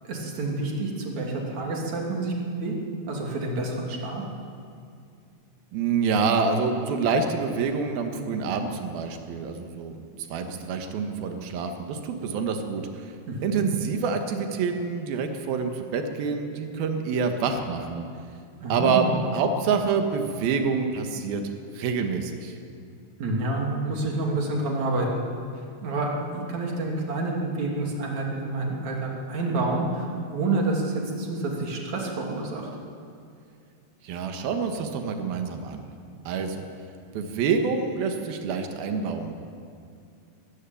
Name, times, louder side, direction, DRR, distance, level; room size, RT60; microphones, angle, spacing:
voice 1, 0.0-2.7 3.1-4.2 13.3-13.7 18.6-19.1 23.2-25.2 25.8-32.7, right 2 dB, 50° right, -1 dB, 4.1 m, -28 dB
voice 2, 5.7-9.9 10.3-13.1 13.4-18.1 18.7-19.0 19.3-21.4 21.7-22.5 34.0-35.9 36.3-36.6 37.1-39.4, right 5 dB, 85° right, 5 dB, 3.2 m, -27 dB
22.0 x 14.0 x 9.2 m, 2.3 s
omnidirectional pair, 4.2 m